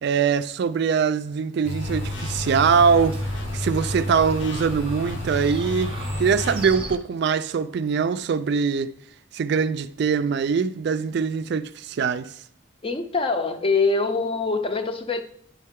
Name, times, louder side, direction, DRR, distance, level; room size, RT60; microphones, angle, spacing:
voice 1, 0.0-3.1 3.5-5.9 6.2-8.9 9.3-12.3, right 6 dB, 55° right, 0.3 m, -22 dB
sound 1, 1.6-6.7, left 2 dB, 70° left, 0.6 m, -32 dB
Chirp tweet, 1.8-7.0, right 1 dB, 30° right, 0.7 m, -34 dB
voice 2, 12.8-15.2, left 3 dB, 25° left, 0.5 m, -24 dB
10.0 x 5.4 x 3.6 m
head